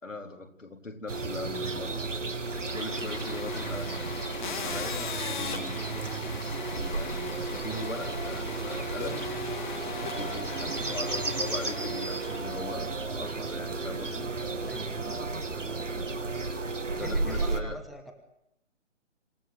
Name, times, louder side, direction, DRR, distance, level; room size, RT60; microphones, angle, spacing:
voice 1, 0.0-2.1 2.6-4.1 4.5-6.0 6.7-9.3 10.2-14.3 17.0-17.8, left 2 dB, 80° left, 4 dB, 4.1 m, -40 dB
sound 1, 1.1-17.6, right 3 dB, 75° right, 2.3 m, -33 dB
sound 2, 2.5-12.7, left 7 dB, 40° left, 2.5 m, -40 dB
voice 2, 14.6-15.0 16.9-18.1, equal, ahead, 5 dB, 1.3 m, -44 dB
27.0 x 16.0 x 9.6 m, 0.81 s
figure-of-eight pair, 140°, 38 cm